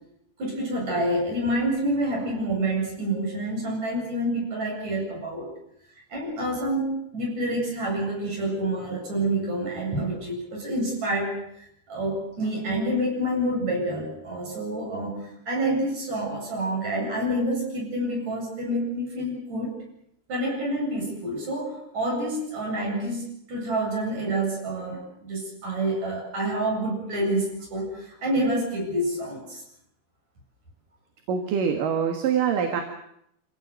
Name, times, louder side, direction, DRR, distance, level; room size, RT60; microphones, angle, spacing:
voice 1, 0.4-5.5 6.1-19.7 20.3-29.6, right 1 dB, 40° right, -1 dB, 9.3 m, -28 dB
voice 2, 31.3-32.8, right 7 dB, 60° right, 5 dB, 3.1 m, -24 dB
27.0 x 17.5 x 8.0 m, 0.76 s
omnidirectional pair, 4.7 m